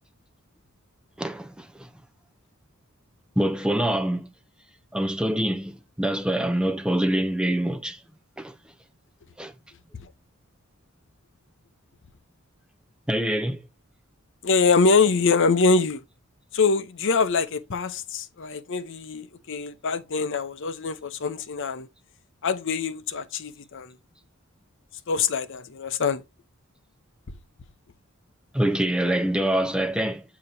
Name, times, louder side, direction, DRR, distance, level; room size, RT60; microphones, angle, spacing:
voice 1, 1.2-1.9 3.4-4.3 4.9-8.0 8.4-8.5 9.4-9.5 13.1-13.6 28.5-30.2, right 1 dB, 5° right, 0.6 m, -25 dB
voice 2, 14.4-16.0 16.5-21.9 22.4-24.0 25.1-26.2, left 4 dB, 60° left, 0.7 m, -24 dB
8.3 x 2.9 x 5.2 m
head